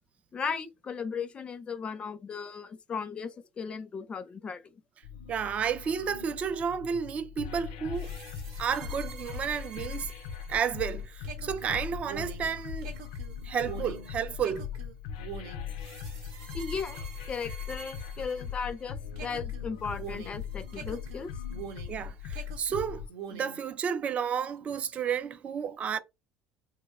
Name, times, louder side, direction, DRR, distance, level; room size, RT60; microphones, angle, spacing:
voice 1, 0.3-4.6 16.5-17.0 17.3-21.3, left 5 dB, 35° left, 0.5 m, -36 dB
sound 1, 5.0-23.1, left 8 dB, 85° left, 0.5 m, -40 dB
voice 2, 5.3-8.1 8.6-10.1 10.5-12.9 13.4-14.7 21.9-23.0 23.3-26.0, right 7 dB, 40° right, 0.4 m, -31 dB
sound 2, 7.9-18.8 19.2-22.0 22.3-23.6, right 6 dB, 80° right, 0.7 m, -45 dB
2.9 x 2.1 x 3.5 m
supercardioid pair, 90°, 3 cm